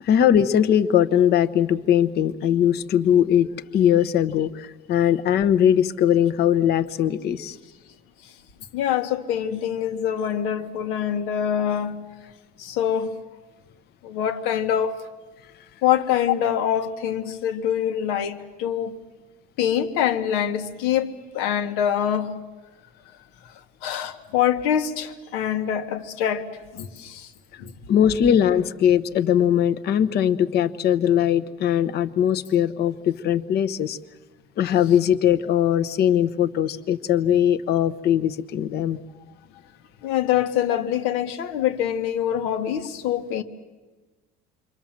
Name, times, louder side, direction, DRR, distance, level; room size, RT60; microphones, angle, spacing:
voice 1, 0.0-7.6 27.5-27.6 27.9-34.0 34.6-39.0 40.7-40.8, left 9 dB, 50° left, 1.0 m, -20 dB
voice 2, 8.7-12.1 12.6-13.2 14.0-15.0 15.8-19.0 19.6-22.4 23.4-23.5 23.8-27.3 27.6-27.7 40.0-43.4, left 9 dB, 90° left, 1.6 m, -25 dB
28.0 x 24.0 x 7.5 m
cardioid pair, 145°, 21 cm